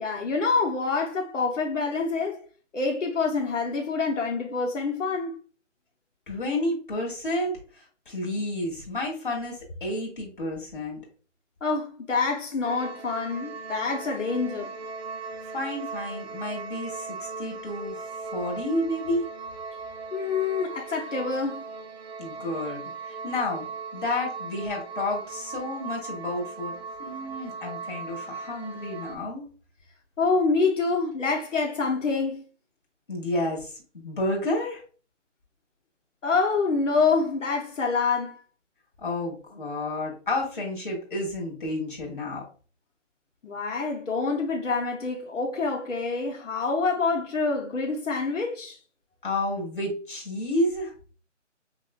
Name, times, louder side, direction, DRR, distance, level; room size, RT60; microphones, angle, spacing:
voice 1, 0.0-2.4 2.7-5.4 11.6-14.7 20.1-21.6 30.2-32.4 36.2-38.4 43.4-48.8, left 4 dB, 85° left, 1.0 m, -26 dB
voice 2, 6.3-11.0 15.5-18.0 18.3-19.2 22.2-26.7 27.0-29.5 33.1-34.8 39.0-42.4 49.2-50.9, left 1 dB, 40° left, 1.4 m, -30 dB
sound 1, 12.6-29.2, right 4 dB, 60° right, 0.5 m, -38 dB
5.0 x 2.3 x 2.3 m
hypercardioid pair, 180°, 37 cm